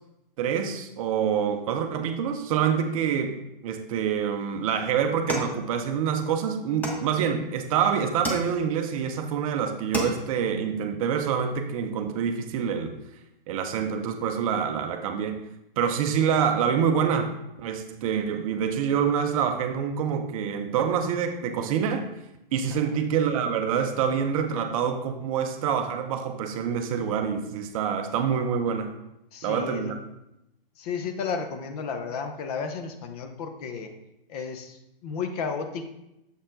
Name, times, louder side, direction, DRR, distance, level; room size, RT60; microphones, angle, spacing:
voice 1, 0.4-13.0 13.5-15.4 15.8-22.1 22.5-28.9 29.4-30.0, right 7 dB, 40° right, 6 dB, 0.5 m, -26 dB
sound 1, 5.3-6.2 6.8-7.6 8.2-8.9 9.4-9.5 9.7-10.5, equal, 5° left, 0.6 m, -33 dB
voice 2, 22.7-23.0 29.3-29.9 30.8-33.9 34.3-35.9, left 5 dB, 40° left, 6 dB, 0.8 m, -33 dB
7.0 x 4.3 x 3.8 m, 0.87 s
hypercardioid pair, 130°, 29 cm